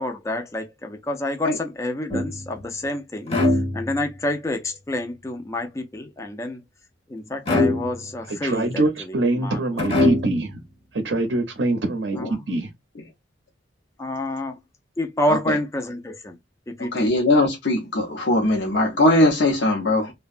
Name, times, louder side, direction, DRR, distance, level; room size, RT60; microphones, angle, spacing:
voice 1, 0.0-3.3 3.7-6.6 7.1-8.8 9.4-9.6 12.2-12.3 14.0-14.5 15.0-16.4 16.7-17.1, left 1 dB, 15° left, 0.4 m, -28 dB
sound 1, 2.1-2.7 3.3-4.2 7.5-8.3 9.8-10.6, left 2 dB, 35° left, 0.7 m, -23 dB
voice 2, 8.3-10.6 10.9-12.2 12.5-12.7, right 2 dB, 65° right, 0.6 m, -24 dB
voice 3, 16.9-20.1, left 1 dB, 70° left, 0.7 m, -20 dB
2.7 x 2.1 x 2.4 m
head